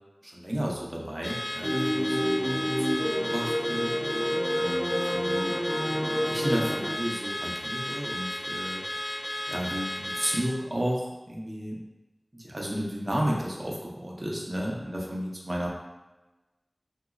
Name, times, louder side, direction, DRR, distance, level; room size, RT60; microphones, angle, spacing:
voice 1, 0.2-4.0 4.6-5.5 6.3-8.8 9.5-11.8 12.3-15.7, equal, 35° right, -3 dB, 0.8 m, -33 dB
Car / Alarm, 1.2-10.5, left 1 dB, 65° left, 0.4 m, -34 dB
sound 1, 1.6-6.9, equal, ahead, 0.4 m, -28 dB
3.8 x 2.7 x 2.3 m, 1.1 s
wide cardioid pair, 45°, 0 cm